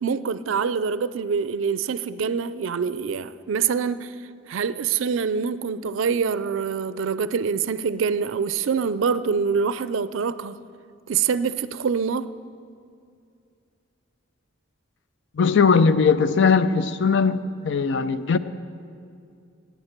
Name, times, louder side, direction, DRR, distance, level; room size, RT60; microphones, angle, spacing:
voice 1, 0.0-4.1 4.5-10.6 11.1-12.3, right 6 dB, 75° right, 0.4 m, -25 dB
voice 2, 15.4-18.4, left 5 dB, 60° left, 0.5 m, -19 dB
17.5 x 9.3 x 4.5 m
head